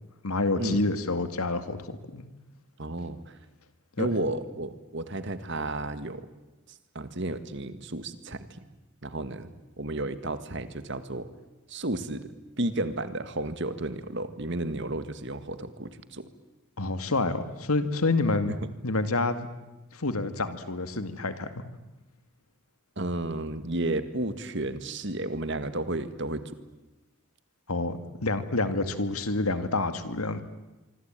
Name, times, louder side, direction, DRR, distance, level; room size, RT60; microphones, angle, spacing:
voice 1, 0.2-2.2 4.0-4.1 16.8-18.6 18.8-19.5 19.9-21.6 27.7-30.4, left 2 dB, 85° left, 10 dB, 2.2 m, -28 dB
voice 2, 2.8-3.4 4.0-6.2 7.0-8.4 9.0-9.5 9.8-11.3 11.7-12.3 12.6-16.3 23.0-26.6, right 2 dB, 55° right, 11 dB, 1.9 m, -32 dB
25.0 x 25.0 x 9.1 m, 1.1 s
head